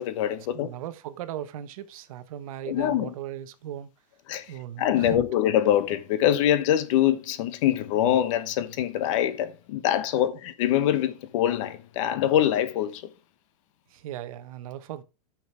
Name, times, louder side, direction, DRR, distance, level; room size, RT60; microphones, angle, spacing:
voice 1, 0.0-0.7 2.6-3.1 4.3-13.1, left 11 dB, 50° left, 1.1 m, -24 dB
voice 2, 0.5-3.9 4.5-5.3 13.9-15.0, right 11 dB, 55° right, 1.0 m, -37 dB
10.5 x 6.1 x 3.3 m
hypercardioid pair, 145°, 21 cm